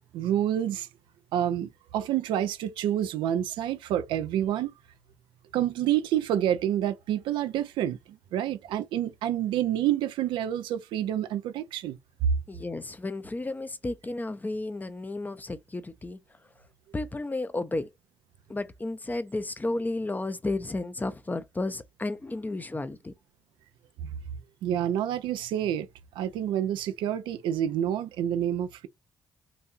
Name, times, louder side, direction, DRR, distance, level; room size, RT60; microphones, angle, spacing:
voice 1, 0.1-0.9 1.3-4.7 5.5-12.3 24.0-24.1 24.6-25.9 26.2-28.9, right 10 dB, 80° right, 0.6 m, -28 dB
voice 2, 12.5-16.2 16.9-17.9 18.5-23.1, left 2 dB, 20° left, 0.7 m, -32 dB
4.0 x 2.7 x 2.6 m
supercardioid pair, 50°, 8 cm